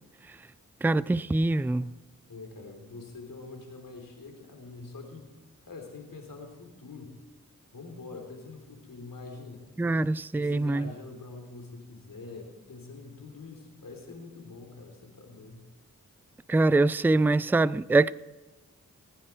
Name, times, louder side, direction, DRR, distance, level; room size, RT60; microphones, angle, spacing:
voice 1, 0.8-1.9 9.8-10.9 16.5-18.1, right 2 dB, 5° right, 0.4 m, -24 dB
voice 2, 2.3-5.3 5.7-7.2 7.7-9.7 10.3-15.7, left 3 dB, 75° left, 3.5 m, -45 dB
20.0 x 10.0 x 4.5 m
cardioid pair, 40°, 34 cm